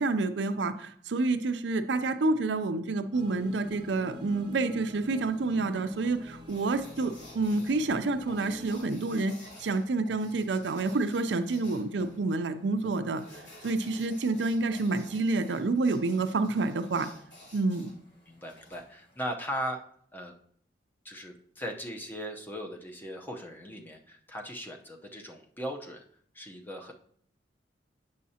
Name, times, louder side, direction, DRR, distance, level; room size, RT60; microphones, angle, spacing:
voice 1, 0.0-9.3 9.6-17.1 17.5-17.9, right 3 dB, 70° right, 9 dB, 0.5 m, -28 dB
sound 1, 3.1-8.9, left 1 dB, 25° right, 0.9 m, -45 dB
sound 2, 6.5-19.3, left 1 dB, 80° left, 3.4 m, -53 dB
voice 2, 18.3-19.8 20.1-20.3 21.0-26.0 26.3-26.9, equal, 10° left, 1 dB, 0.7 m, -38 dB
8.4 x 6.3 x 2.8 m, 0.62 s
head